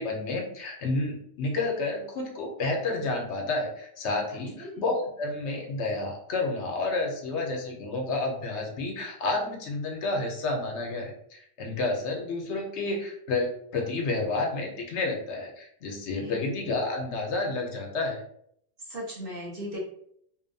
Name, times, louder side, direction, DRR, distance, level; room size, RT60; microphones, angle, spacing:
voice 1, 0.0-18.2, left 2 dB, 75° left, 1 dB, 0.9 m, -30 dB
voice 2, 18.8-19.8, equal, 50° right, -5 dB, 1.0 m, -37 dB
2.7 x 2.1 x 2.6 m, 0.68 s
omnidirectional pair, 1.2 m